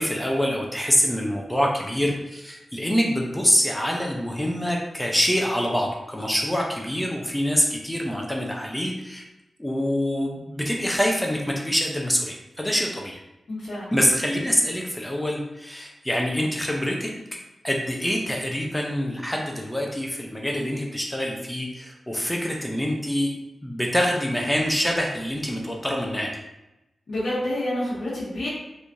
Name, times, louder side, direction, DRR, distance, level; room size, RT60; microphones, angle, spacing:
voice 1, 0.0-9.2 9.6-13.2 13.9-17.4 17.6-23.3 23.6-26.4, equal, 10° left, 0 dB, 0.6 m, -25 dB
voice 2, 13.5-13.9 27.1-28.5, left 1 dB, 70° left, -9 dB, 1.0 m, -28 dB
3.3 x 3.1 x 2.6 m, 0.94 s
cardioid pair, 70°, 0 cm